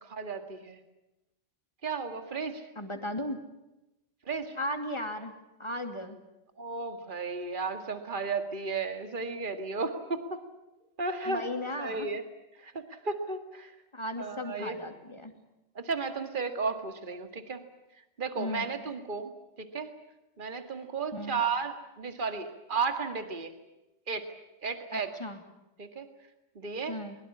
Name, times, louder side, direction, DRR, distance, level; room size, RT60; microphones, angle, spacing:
voice 1, 0.0-0.8 1.8-2.6 4.3-4.6 6.6-10.4 11.0-11.4 11.8-12.2 12.6-13.7 14.2-14.8 15.8-17.6 18.2-19.3 19.6-19.9 20.4-23.5 24.1-24.3 24.6-25.1 25.8-26.1 26.6-27.0, right 4 dB, 40° right, 8 dB, 2.1 m, -34 dB
voice 2, 2.8-3.4 4.6-5.3 5.6-6.2 11.2-12.1 13.9-15.3 18.4-18.7 21.1-21.4 24.9-25.4 26.9-27.2, left 1 dB, 20° left, 6 dB, 2.6 m, -36 dB
22.5 x 22.5 x 8.5 m, 0.94 s
omnidirectional pair, 1.3 m